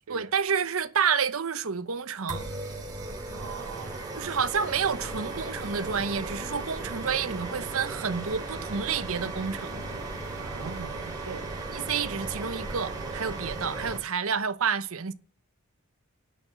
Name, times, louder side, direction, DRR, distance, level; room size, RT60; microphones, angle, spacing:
voice 1, 0.1-2.5 4.2-9.8 11.7-15.1, right 6 dB, 65° right, 0.9 m, -29 dB
sound 1, 2.3-14.0, right 2 dB, 15° right, 3.3 m, -36 dB
voice 2, 3.3-4.1 10.4-11.5, right 6 dB, 90° right, 0.5 m, -41 dB
10.5 x 6.2 x 8.0 m
head